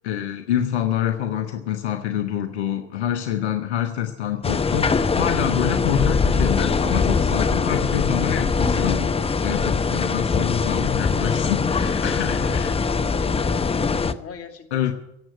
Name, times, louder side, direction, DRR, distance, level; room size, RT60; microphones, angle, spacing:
voice 1, 0.0-12.7 14.7-14.9, left 10 dB, 80° left, 6 dB, 1.2 m, -26 dB
sound 1, 4.4-14.1, left 5 dB, 15° left, 0.8 m, -22 dB
voice 2, 12.4-14.9, left 6 dB, 45° left, 6 dB, 2.4 m, -42 dB
17.0 x 7.7 x 9.8 m, 0.85 s
hypercardioid pair, 75°, 33 cm